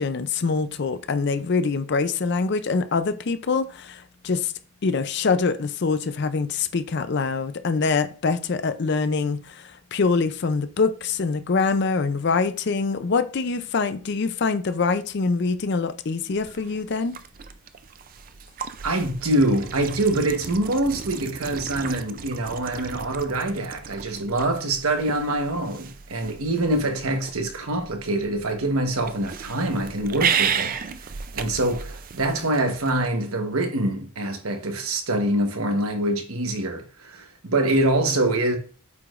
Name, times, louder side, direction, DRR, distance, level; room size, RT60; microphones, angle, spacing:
voice 1, 0.0-4.5 4.8-17.1, left 4 dB, 50° left, 0.5 m, -24 dB
sound 1, 16.3-33.1, right 7 dB, 40° right, 0.4 m, -34 dB
voice 2, 18.8-30.7 31.3-38.6, right 1 dB, 80° right, 1.1 m, -25 dB
8.2 x 5.0 x 2.5 m
head